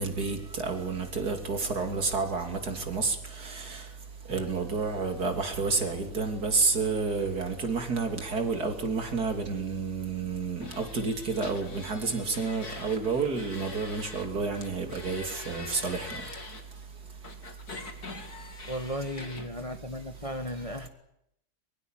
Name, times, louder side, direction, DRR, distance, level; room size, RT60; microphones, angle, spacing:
voice 1, 0.0-17.2 17.8-17.9 18.4-18.7, right 4 dB, 65° right, 3.5 m, -30 dB
sound 1, 10.6-14.3 14.5-16.6 17.2-19.5, left 3 dB, 65° left, 3.4 m, -44 dB
voice 2, 18.7-20.9, equal, 20° left, 1.6 m, -35 dB
23.0 x 22.5 x 9.1 m
omnidirectional pair, 1.8 m